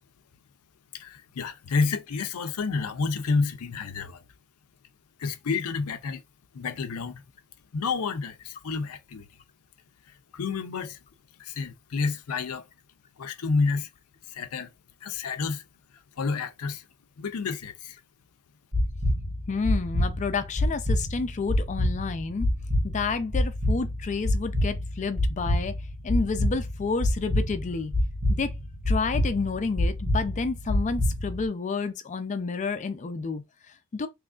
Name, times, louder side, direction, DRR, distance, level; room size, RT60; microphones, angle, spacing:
voice 1, 0.9-4.2 5.2-6.2 6.5-7.2 7.7-9.3 10.3-11.0 11.4-12.7 13.2-13.9 14.3-14.7 15.0-15.6 16.2-16.9 17.2-18.0, left 4 dB, 85° left, 0.5 m, -29 dB
sound 1, 18.7-31.4, left 1 dB, 65° right, 1.8 m, -27 dB
voice 2, 19.5-22.5 22.8-25.8 26.0-27.9 28.3-28.5 28.9-34.1, left 4 dB, 35° left, 0.4 m, -30 dB
3.6 x 3.1 x 2.4 m
head